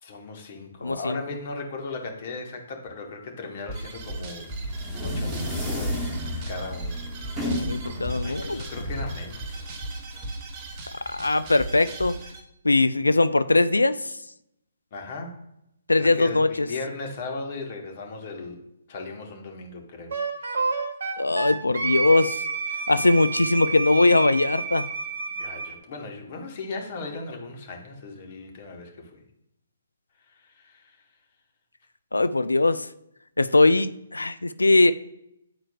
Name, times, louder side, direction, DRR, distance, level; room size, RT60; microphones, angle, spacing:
voice 1, 0.0-4.5 5.0-6.0 6.4-7.0 8.2-9.7 14.9-15.3 16.0-18.6 18.9-20.5 25.4-29.2 30.3-31.1, left 3 dB, 45° left, 3 dB, 1.3 m, -37 dB
voice 2, 0.8-1.2 7.5-8.6 11.1-12.2 12.6-14.1 15.9-16.7 21.2-22.4 22.9-24.9 32.1-32.9 33.4-34.9, left 2 dB, 85° left, 14 dB, 0.3 m, -21 dB
sound 1, 3.7-12.4, right 2 dB, 30° right, 0.8 m, -37 dB
sound 2, 4.4-10.2, left 1 dB, 10° right, 1.5 m, -32 dB
Wind instrument woodwind instrument, 20.1-25.7, right 4 dB, 60° right, 0.9 m, -29 dB
9.6 x 4.4 x 2.3 m, 0.80 s
figure-of-eight pair, 135°, 0 cm